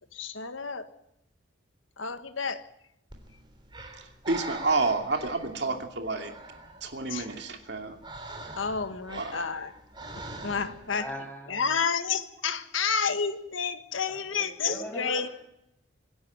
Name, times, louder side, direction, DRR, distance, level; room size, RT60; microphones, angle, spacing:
voice 1, 0.1-0.9 2.0-2.7 7.1-7.3 8.5-9.7 10.1-11.1 11.5-15.3, left 5 dB, 85° left, 9 dB, 1.6 m, -30 dB
Breathing, 3.1-11.0, right 2 dB, 25° right, 3.6 m, -44 dB
voice 2, 4.0-6.3 6.8-8.0 9.1-9.4, right 3 dB, 60° right, 5 dB, 2.6 m, -30 dB
voice 3, 10.9-11.6 14.1-15.3, equal, 10° left, 2 dB, 7.3 m, -39 dB
25.0 x 11.0 x 9.6 m, 0.81 s
head